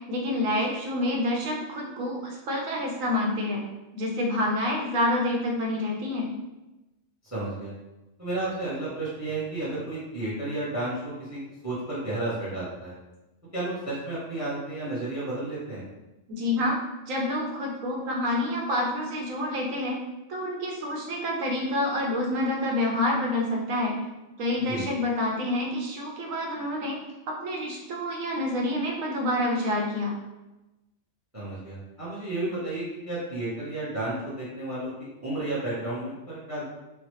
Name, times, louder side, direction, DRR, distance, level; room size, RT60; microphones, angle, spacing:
voice 1, 0.1-3.6 3.9-6.3 16.3-16.8 17.1-20.0 20.3-24.0 24.4-27.0 27.3-30.1, left 1 dB, 85° right, -1 dB, 1.1 m, -28 dB
voice 2, 7.3-7.7 8.2-13.0 13.5-15.8 24.7-24.8 31.3-36.7, right 2 dB, 15° right, -8 dB, 0.6 m, -32 dB
3.1 x 2.1 x 3.0 m, 1.0 s
omnidirectional pair, 1.3 m